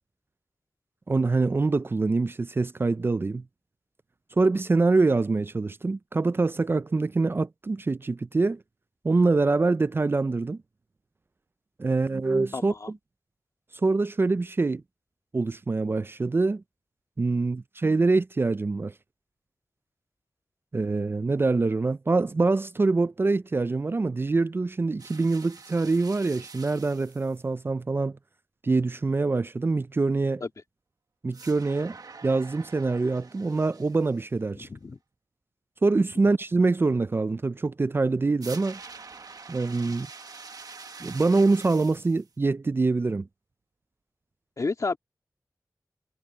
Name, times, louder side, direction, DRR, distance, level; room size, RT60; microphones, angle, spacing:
voice 1, 1.1-3.4 4.4-8.6 9.0-10.6 11.8-12.7 13.8-14.8 15.3-16.6 17.2-18.9 20.7-28.2 28.6-30.4 31.2-32.0 32.2-34.7 35.8-38.8 39.5-40.1 41.0-43.3, right 3 dB, 35° right, 0.4 m, -25 dB
voice 2, 12.5-12.9 30.4-30.5 34.6-35.0 44.6-45.0, left 3 dB, 55° left, 2.0 m, -31 dB
sound 1, 25.0-27.4 31.3-34.2 38.4-42.2, right 4 dB, 65° right, 1.3 m, -46 dB
wide cardioid pair, 105°, 7 cm